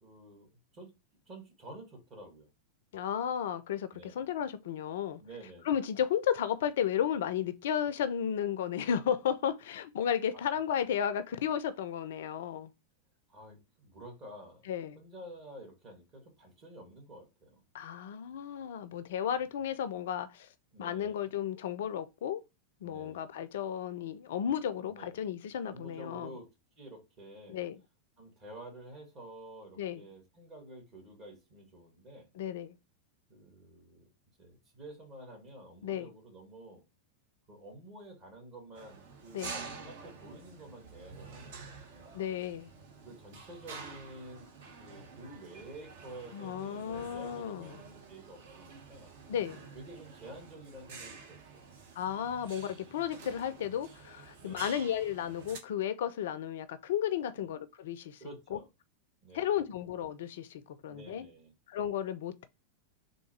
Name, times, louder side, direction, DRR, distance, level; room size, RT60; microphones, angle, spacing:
voice 1, 0.0-0.9 1.3-2.5 3.9-4.3 5.2-5.8 13.3-14.6 14.9-17.6 19.3-19.5 20.7-21.4 22.8-23.4 24.9-25.2 25.6-26.5 26.8-27.6 28.2-32.3 33.3-34.0 34.4-36.8 37.5-42.2 43.0-44.5 44.8-49.1 49.7-51.4 54.4-54.7 57.4-57.5 58.2-58.7 59.2-59.7 60.9-61.5, right 1 dB, 35° right, 2.1 m, -50 dB
voice 2, 2.9-5.2 5.7-12.7 14.7-15.0 17.7-20.5 20.8-22.4 22.8-26.3 27.5-27.8 29.8-30.0 32.4-32.8 35.8-36.1 39.3-39.5 42.1-42.7 46.3-47.8 49.3-49.6 52.0-58.2 58.5-58.6 59.3-61.2 61.7-62.5, left 9 dB, 55° left, 0.3 m, -33 dB
sound 1, 38.7-55.6, right 5 dB, 55° right, 0.8 m, -49 dB
3.6 x 2.7 x 4.4 m
figure-of-eight pair, 90°, 0 cm